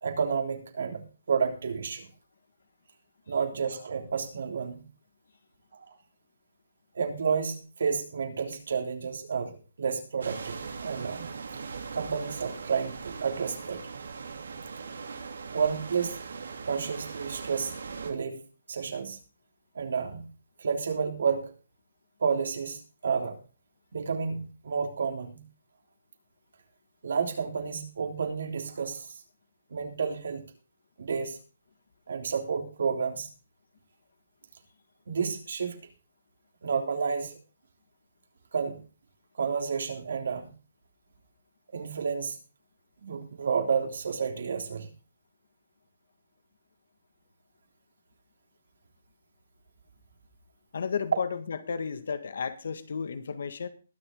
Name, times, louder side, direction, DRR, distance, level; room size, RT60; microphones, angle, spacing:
voice 1, 0.0-2.1 3.3-4.8 5.7-5.8 6.9-9.5 9.8-11.3 11.9-13.8 15.5-16.2 16.6-17.7 18.0-18.4 18.7-19.2 19.7-20.2 20.6-21.5 22.2-23.4 23.9-25.4 27.0-29.2 29.7-30.5 31.0-31.4 32.1-33.3 35.1-35.8 36.6-37.4 38.5-38.8 39.4-40.5 41.7-42.4 43.0-44.9, right 6 dB, 70° right, 5 dB, 3.2 m, -30 dB
sound 1, 10.2-18.1, right 5 dB, 85° right, 3.1 m, -40 dB
voice 2, 50.7-53.7, left 6 dB, 65° left, 12 dB, 1.7 m, -33 dB
21.5 x 7.3 x 3.8 m, 0.34 s
hypercardioid pair, 170°, 0 cm